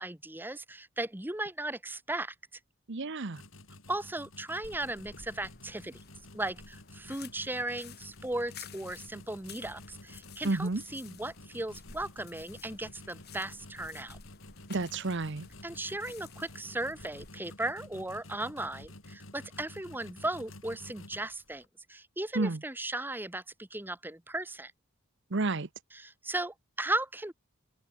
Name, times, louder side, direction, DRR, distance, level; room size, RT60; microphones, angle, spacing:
voice 1, 0.0-2.3 3.9-6.0 6.3-14.2 15.6-21.6 21.9-24.7 25.9-27.3, right 2 dB, 10° right, 1.3 m, -36 dB
voice 2, 2.9-3.4 10.4-10.8 14.7-15.5 22.3-22.6 25.3-25.7, right 3 dB, 55° right, 1.0 m, -30 dB
sound 1, 3.3-21.7, left 1 dB, 65° left, 5.9 m, -51 dB
sound 2, 4.6-17.3, left 6 dB, 50° left, 4.0 m, -53 dB
open air
head